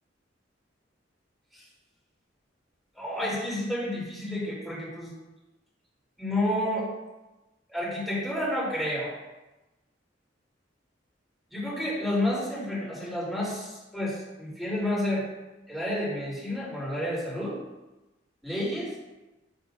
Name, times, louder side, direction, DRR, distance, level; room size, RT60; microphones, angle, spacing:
voice 1, 3.0-5.1 6.2-6.9 7.7-9.2 11.5-15.2 15.7-17.6 18.4-18.9, left 1 dB, ahead, -6 dB, 3.6 m, -30 dB
12.5 x 8.0 x 2.7 m, 1.0 s
head